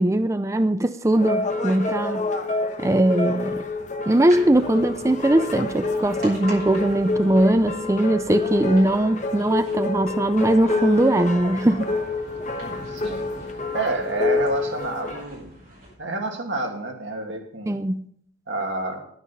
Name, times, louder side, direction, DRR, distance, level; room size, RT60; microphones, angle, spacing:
voice 1, 0.0-2.3 2.8-3.6 4.1-11.9 17.7-18.0, right 1 dB, 15° right, 10 dB, 0.5 m, -20 dB
sound 1, 1.1-15.2, left 3 dB, 40° left, 1.3 m, -28 dB
sound 2, 4.3-16.0, right 1 dB, 50° right, 6.7 m, -43 dB
voice 2, 12.9-13.2 13.7-15.5 16.0-17.8 18.5-19.0, right 2 dB, 85° right, 3 dB, 2.4 m, -29 dB
11.0 x 9.5 x 5.6 m, 0.65 s
head